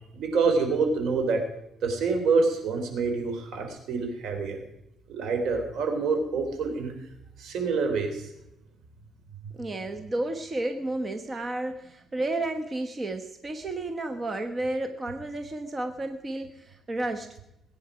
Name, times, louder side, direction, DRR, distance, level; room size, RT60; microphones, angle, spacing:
voice 1, 0.1-1.4 1.8-4.6 5.1-6.9 7.4-8.3 9.4-9.5, right 4 dB, 70° right, 5 dB, 3.4 m, -26 dB
voice 2, 9.5-17.3, right 2 dB, 30° right, 7 dB, 1.2 m, -32 dB
21.0 x 9.5 x 5.0 m, 0.84 s
cardioid pair, 95°, 0 cm